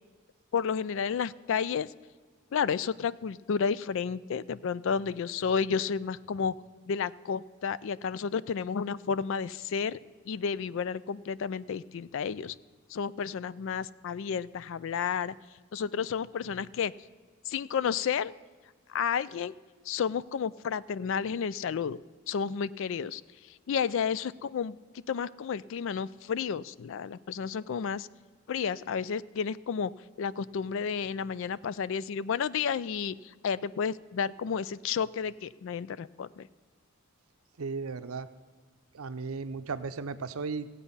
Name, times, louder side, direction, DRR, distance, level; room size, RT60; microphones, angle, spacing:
voice 1, 0.5-1.9 2.5-6.5 6.9-10.0 10.3-12.6 12.9-15.3 15.7-16.9 17.5-18.3 18.9-19.5 19.9-22.0 22.3-23.2 23.7-24.8 25.1-28.1 28.5-29.9 30.2-36.5, left 6 dB, 60° left, 19 dB, 0.3 m, -31 dB
voice 2, 37.6-38.3 38.9-40.7, right 4 dB, 80° right, 12 dB, 0.6 m, -35 dB
16.5 x 8.2 x 5.5 m, 1.4 s
head